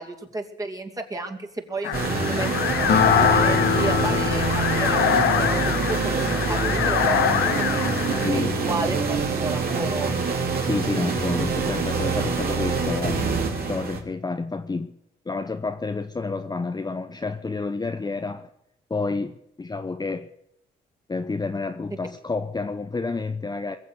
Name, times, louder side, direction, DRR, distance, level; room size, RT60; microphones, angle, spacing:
voice 1, 0.0-2.8 3.2-7.9 8.2-10.1, right 2 dB, 15° right, 3 dB, 2.6 m, -32 dB
sound 1, 1.8-8.3, left 9 dB, 85° left, 1.3 m, -25 dB
sound 2, 1.9-14.0, right 4 dB, 50° right, 3.8 m, -25 dB
Acoustic guitar, 2.9-6.5, left 6 dB, 55° left, 1.4 m, -25 dB
voice 2, 8.2-8.6 10.4-13.3 13.7-14.9 15.3-18.5 18.9-20.3 21.1-23.8, left 3 dB, 20° left, 7 dB, 0.9 m, -29 dB
21.5 x 7.5 x 8.0 m, 0.78 s
cardioid pair, 90°, 20 cm